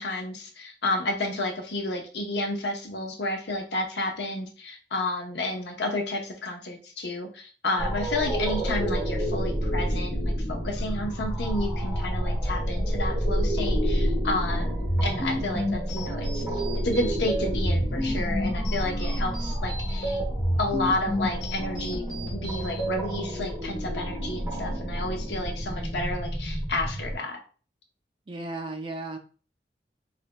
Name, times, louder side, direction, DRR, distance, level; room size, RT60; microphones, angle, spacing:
voice 1, 0.0-20.2 20.6-27.4, left 2 dB, 75° left, 2 dB, 0.8 m, -31 dB
sound 1, 7.8-27.1, equal, 10° right, 1.0 m, -29 dB
sound 2, 14.7-23.0, equal, 40° left, 1.6 m, -31 dB
voice 2, 28.3-29.2, right 2 dB, 30° right, 5 dB, 0.4 m, -35 dB
3.9 x 3.3 x 2.2 m, 0.38 s
head